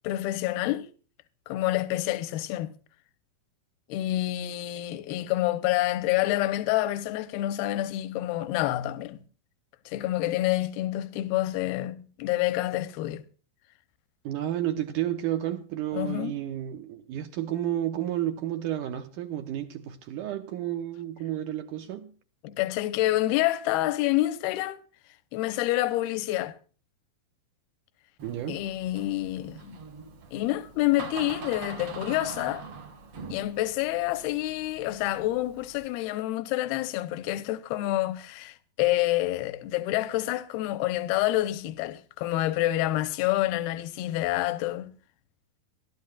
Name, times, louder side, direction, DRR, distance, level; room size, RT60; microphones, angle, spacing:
voice 1, 0.0-0.9 1.5-2.7 3.9-9.2 9.9-13.2 15.9-16.4 22.4-24.8 25.3-26.6 28.5-29.8 30.3-32.6 33.3-44.9, left 15 dB, 85° left, 2.7 m, -28 dB
voice 2, 14.2-22.1 28.2-28.7, right 12 dB, 70° right, 2.1 m, -31 dB
Door, 28.2-35.9, right 5 dB, 50° right, 1.9 m, -44 dB
24.5 x 12.5 x 2.4 m
omnidirectional pair, 4.5 m